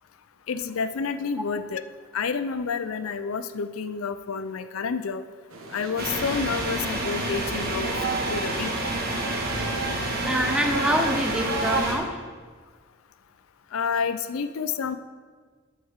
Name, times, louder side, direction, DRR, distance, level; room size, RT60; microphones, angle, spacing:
voice 1, 0.5-1.8 2.1-5.2 5.7-7.9 8.3-8.9 13.7-15.0, left 5 dB, 90° left, 12 dB, 0.5 m, -29 dB
sound 1, 5.5-11.8, right 3 dB, 80° right, 1.3 m, -33 dB
sound 2, 6.0-12.0, right 1 dB, 50° right, 1.6 m, -29 dB
voice 2, 10.2-12.2, equal, 5° right, 4 dB, 0.8 m, -26 dB
12.0 x 7.7 x 3.6 m, 1.5 s
head